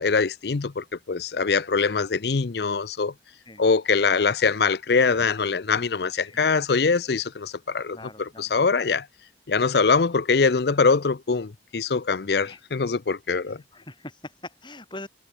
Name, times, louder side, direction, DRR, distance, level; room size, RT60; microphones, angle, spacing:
voice 1, 0.0-3.1 3.6-9.1 9.5-13.6, left 4 dB, 65° left, 0.6 m, -23 dB
voice 2, 7.9-8.5 12.4-12.6 13.5-15.1, left 2 dB, 25° left, 5.6 m, -42 dB
head